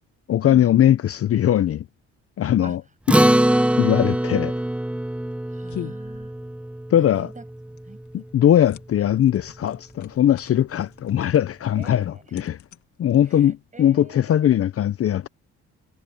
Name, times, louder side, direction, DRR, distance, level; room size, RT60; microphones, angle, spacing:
voice 1, 0.3-1.9 2.4-2.8 3.8-4.5 6.9-7.3 8.1-12.6 13.0-15.3, left 11 dB, 50° left, 0.6 m, -20 dB
Acoustic guitar, 3.1-7.8, right 1 dB, 5° right, 0.8 m, -22 dB
voice 2, 5.5-6.3 6.9-8.0 11.8-12.4 13.3-14.6, right 3 dB, 25° right, 6.6 m, -44 dB
sound 1, 5.7-13.7, left 12 dB, 75° left, 2.1 m, -44 dB
cardioid pair, 90°, 30 cm